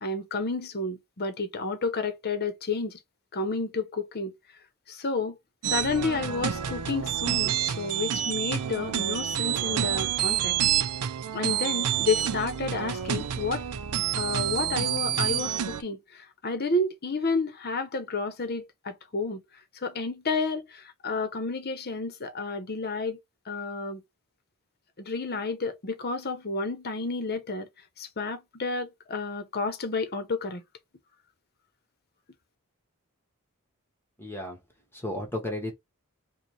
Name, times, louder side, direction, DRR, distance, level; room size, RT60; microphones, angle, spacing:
voice 1, 0.0-3.0 3.3-4.3 4.9-5.4 5.6-10.6 11.3-13.6 14.1-19.4 19.8-23.2 23.5-24.0 25.0-27.7 28.0-30.6, left 3 dB, 45° left, 0.9 m, -31 dB
sound 1, 5.6-15.8, right 10 dB, 90° right, 0.5 m, -28 dB
voice 2, 34.2-34.6 34.9-35.7, left 1 dB, 10° left, 1.3 m, -33 dB
5.1 x 2.3 x 3.2 m
head